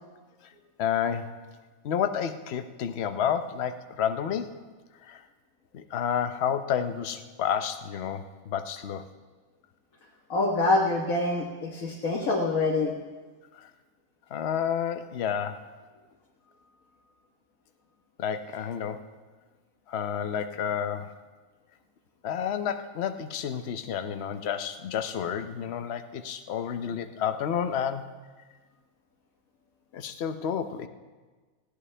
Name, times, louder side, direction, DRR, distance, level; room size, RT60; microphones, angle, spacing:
voice 1, 0.8-1.4 1.8-4.6 5.0-5.2 5.7-9.0 13.5-13.7 14.3-15.6 18.2-19.0 19.9-21.1 22.2-28.1 29.9-30.9, left 8 dB, 55° left, 9 dB, 1.0 m, -30 dB
voice 2, 10.3-12.9, left 2 dB, 75° left, -2 dB, 1.8 m, -25 dB
19.5 x 15.5 x 3.3 m, 1.4 s
omnidirectional pair, 1.4 m